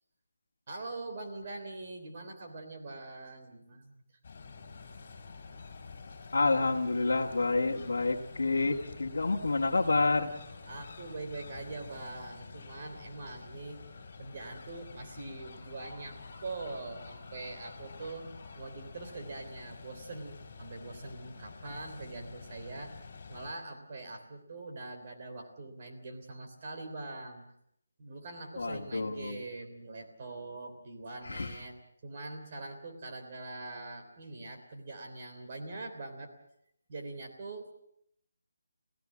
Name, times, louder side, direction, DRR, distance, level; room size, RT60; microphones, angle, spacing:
voice 1, 0.7-4.0 10.7-13.8 14.2-18.3 18.5-22.9 23.3-27.4 28.0-31.7 32.0-36.3 36.9-37.7, right 3 dB, 30° right, 4 dB, 3.3 m, -43 dB
sound 1, 4.2-23.5, left 4 dB, 35° left, 4.0 m, -48 dB
voice 2, 6.3-10.3 28.6-29.4 31.3-31.6, left 3 dB, 70° left, -2 dB, 2.0 m, -28 dB
27.0 x 16.5 x 7.5 m, 0.71 s
hypercardioid pair, 175°, 0 cm